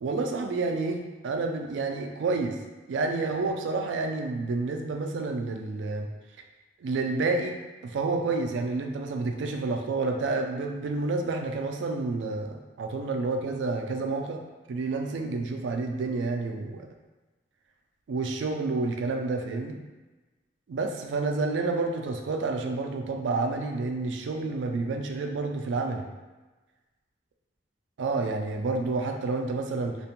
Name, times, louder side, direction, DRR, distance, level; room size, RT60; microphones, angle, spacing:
voice 1, 0.0-2.6 2.9-6.1 6.8-7.6 7.8-14.4 14.7-16.9 18.1-19.8 20.7-26.0 28.0-30.0, right 3 dB, 80° right, 4 dB, 0.3 m, -29 dB
2.5 x 2.1 x 2.8 m, 1.2 s
head